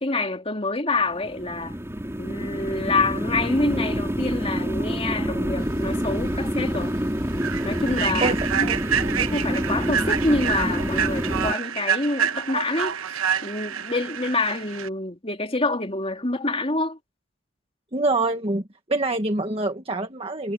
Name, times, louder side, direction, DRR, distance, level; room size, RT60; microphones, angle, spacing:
voice 1, 0.0-1.8 2.2-7.0 7.6-8.7 9.2-13.2 13.4-17.0, left 2 dB, 30° left, 3.0 m, -27 dB
sound 1, 1.0-11.5, equal, 15° right, 3.9 m, -27 dB
Human voice / Train, 6.0-6.2 6.6-6.8 7.3-14.9, right 8 dB, 85° right, 1.1 m, -28 dB
voice 2, 8.2-8.9 17.9-18.6 18.9-20.5, right 2 dB, 30° right, 1.6 m, -25 dB
head